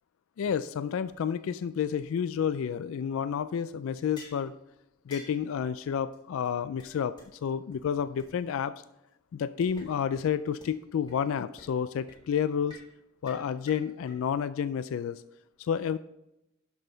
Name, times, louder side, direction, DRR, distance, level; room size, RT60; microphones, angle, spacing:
voice 1, 0.4-4.5 5.1-8.7 9.3-12.8 13.2-15.2 15.6-16.0, left 7 dB, 75° left, 14 dB, 0.3 m, -30 dB
sound 1, 4.2-4.4 5.1-5.4 6.1-6.2 6.4-6.5 6.8-6.9 7.2-7.3 7.7-7.8 8.2-8.3 9.6-9.9 10.2-10.3 10.6-10.7 11.1-11.2 11.6-11.8 12.1-12.2 12.7-12.9 13.3-14.2, left 2 dB, 20° left, 1.8 m, -48 dB
12.0 x 6.1 x 3.8 m, 0.88 s
head